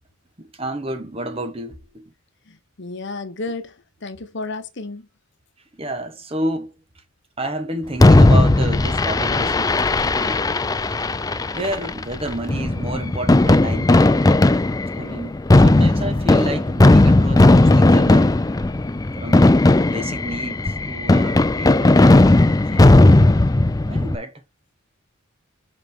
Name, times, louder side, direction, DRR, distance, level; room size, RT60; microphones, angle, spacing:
voice 1, 0.4-2.1 5.7-7.0 7.4-9.9 10.2-10.5 11.5-13.9 15.0-18.3 19.2-22.2 22.6-23.4 23.8-24.4, right 1 dB, 30° right, 1.5 m, -30 dB
voice 2, 2.5-3.7 4.0-5.1, left 3 dB, 60° left, 1.1 m, -32 dB
Fireworks, 8.0-24.1, left 2 dB, 15° left, 0.4 m, -15 dB
5.6 x 5.2 x 5.2 m
head